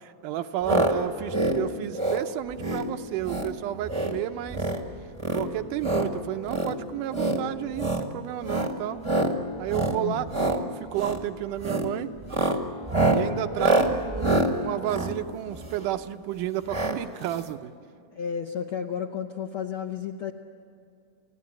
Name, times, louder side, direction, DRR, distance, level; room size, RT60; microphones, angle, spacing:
voice 1, 0.0-4.7 5.3-9.0 9.6-12.1 13.1-17.7, right 12 dB, 85° right, 8 dB, 2.3 m, -32 dB
sound 1, 0.6-0.9 1.2-1.6 1.9-2.2 2.6-2.9 3.2-3.5 3.8-4.2 4.5-4.8 5.2-6.1 6.5-6.7 7.1-7.4 7.7-8.1 8.4-8.7 9.0-9.3 9.7-10.0 10.3-10.6 10.9-11.2 11.6-11.9 12.2-15.9 16.7-17.0 17.2-17.3 17.5-17.6, right 2 dB, 25° right, 0.6 m, -25 dB
voice 2, 10.0-10.4 18.1-20.3, left 8 dB, 70° left, 2 dB, 1.2 m, -32 dB
30.0 x 17.0 x 9.9 m, 2.5 s
omnidirectional pair, 3.7 m